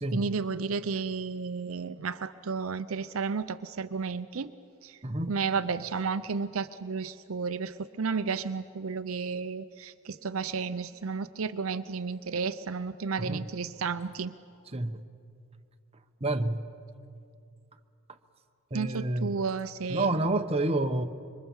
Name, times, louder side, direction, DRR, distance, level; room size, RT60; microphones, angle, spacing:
voice 1, 0.1-4.5 4.8-5.0 5.3-14.3 18.7-20.4, right 5 dB, 70° right, 0.6 m, -32 dB
voice 2, 5.0-5.3 13.2-13.4 14.7-15.0 16.2-16.6 18.7-19.4 19.9-21.1, right 2 dB, 30° right, 1.0 m, -29 dB
26.0 x 23.5 x 7.2 m
head